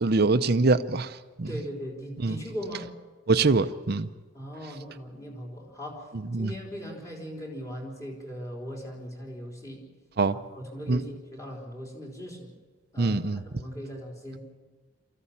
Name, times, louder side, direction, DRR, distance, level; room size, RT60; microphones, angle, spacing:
voice 1, 0.0-1.5 2.2-2.4 3.3-4.1 6.3-6.5 10.2-10.4 10.9-11.0 13.0-13.4, right 3 dB, 55° right, 11 dB, 0.7 m, -24 dB
voice 2, 1.5-2.9 4.3-6.1 6.4-9.8 10.3-12.5 12.9-14.4, equal, 15° left, 0 dB, 3.8 m, -39 dB
23.5 x 14.5 x 8.6 m, 1.4 s
head